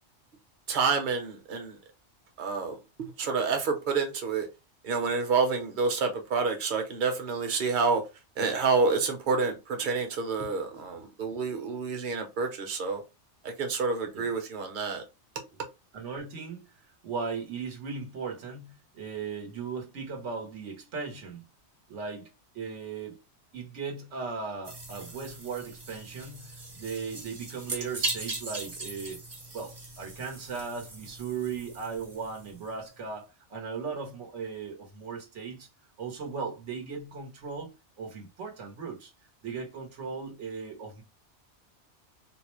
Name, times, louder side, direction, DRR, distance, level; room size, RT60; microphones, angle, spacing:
voice 1, 0.7-1.8 2.4-2.8 3.2-4.5 4.8-8.0 8.4-13.0 13.4-15.0, right 4 dB, 50° right, 0.9 m, -28 dB
voice 2, 15.9-21.5 21.9-23.2 23.5-29.2 29.5-35.7 36.0-37.7 38.0-39.1 39.4-41.0, right 5 dB, 90° right, 1.2 m, -37 dB
sound 1, 24.6-32.8, right 2 dB, 30° right, 0.6 m, -39 dB
3.9 x 2.1 x 3.0 m
omnidirectional pair, 1.2 m